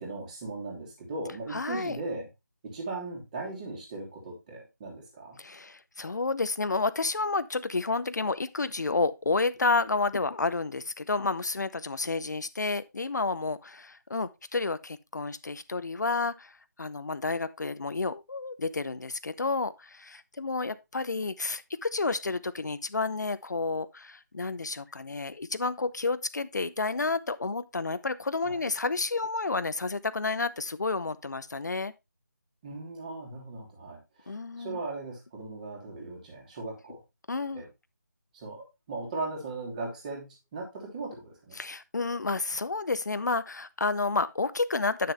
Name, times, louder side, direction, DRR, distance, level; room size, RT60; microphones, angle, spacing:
voice 1, 0.0-2.3 2.6-5.4 28.4-28.6 32.6-37.0 37.5-37.7 38.3-41.6, right 3 dB, 25° right, 2.9 m, -38 dB
voice 2, 1.5-2.0 5.4-31.9 34.3-34.8 37.3-37.6 41.5-45.1, left 3 dB, 65° left, 0.6 m, -30 dB
9.7 x 6.6 x 3.2 m
figure-of-eight pair, 160°, 10 cm